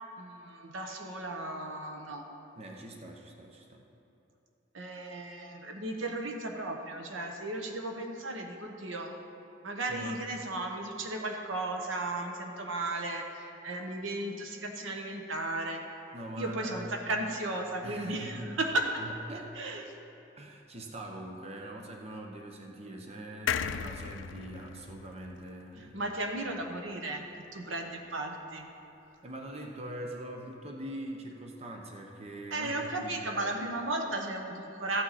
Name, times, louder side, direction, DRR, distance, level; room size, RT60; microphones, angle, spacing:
voice 1, 0.2-2.3 4.7-9.2 9.6-15.8 16.4-19.0 19.5-19.9 25.8-27.2 27.5-28.7 32.5-35.0, right 2 dB, 90° right, 3 dB, 1.1 m, -35 dB
voice 2, 2.6-3.8 9.9-10.2 16.1-16.9 17.8-18.5 19.0-19.5 20.4-25.9 29.2-33.6, right 1 dB, 30° right, 1 dB, 0.9 m, -43 dB
sound 1, 23.5-26.9 27.3-27.4 27.6-27.7, left 8 dB, 75° left, 0.4 m, -37 dB
14.0 x 8.9 x 4.2 m, 2.9 s
head